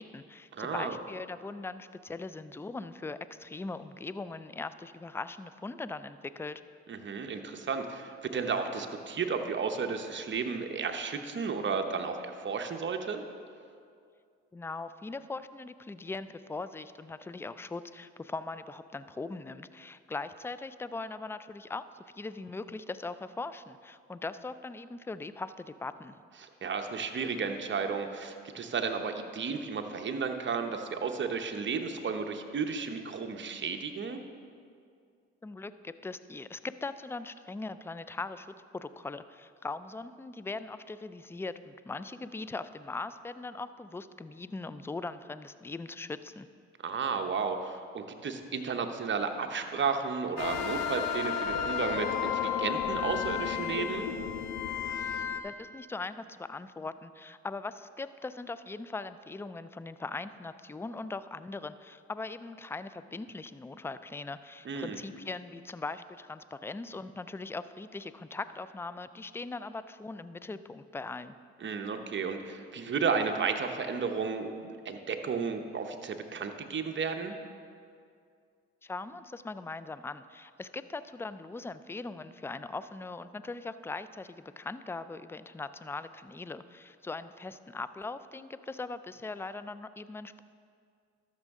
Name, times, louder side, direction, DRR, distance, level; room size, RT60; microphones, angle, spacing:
voice 1, 0.0-6.6 14.5-26.2 35.4-46.5 55.4-71.3 78.8-90.4, left 3 dB, 10° left, 13 dB, 0.3 m, -40 dB
voice 2, 0.5-1.0 6.9-13.2 26.4-34.2 46.8-54.1 64.6-65.0 71.6-77.4, right 5 dB, 40° right, 5 dB, 0.9 m, -33 dB
sound 1, 50.4-55.4, left 8 dB, 75° left, 0.7 m, -32 dB
13.0 x 6.3 x 3.7 m, 2.3 s
supercardioid pair, 55°, 29 cm